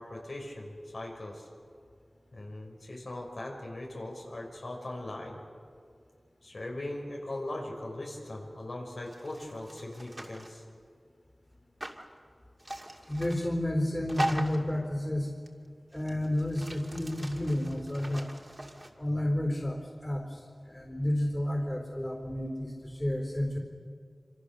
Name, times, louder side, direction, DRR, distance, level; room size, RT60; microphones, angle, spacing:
voice 1, 0.0-1.5 2.3-5.4 6.4-10.6, left 1 dB, 65° left, 0 dB, 5.5 m, -40 dB
sound 1, 9.1-10.6 11.8-12.0 12.6-13.5 14.1-14.7 15.5-15.6 15.9-18.9, right 1 dB, 25° right, 2.4 m, -39 dB
voice 2, 13.1-15.3 15.9-18.3 19.0-19.8 20.0-20.3 20.7-23.6, left 1 dB, 20° left, 3 dB, 4.0 m, -31 dB
27.0 x 26.0 x 6.8 m, 2.1 s
wide cardioid pair, 75°, 0 cm